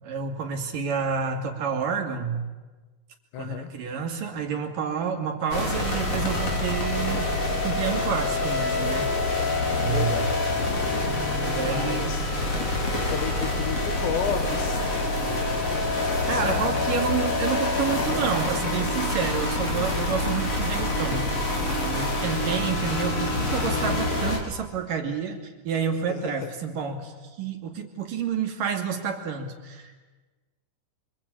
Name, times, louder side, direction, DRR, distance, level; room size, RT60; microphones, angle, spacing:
voice 1, 0.0-2.4 3.4-9.3 9.8-10.4 11.4-12.2 16.2-30.0, right 6 dB, 55° right, 2 dB, 4.0 m, -29 dB
voice 2, 3.3-3.7 9.8-10.5 11.4-12.8 13.1-15.1 16.3-16.6 26.1-26.5, left 8 dB, 90° left, 9 dB, 3.9 m, -33 dB
sound 1, 5.5-24.4, left 2 dB, 40° left, 5.2 m, -26 dB
27.0 x 25.0 x 8.7 m, 1.3 s
omnidirectional pair, 4.8 m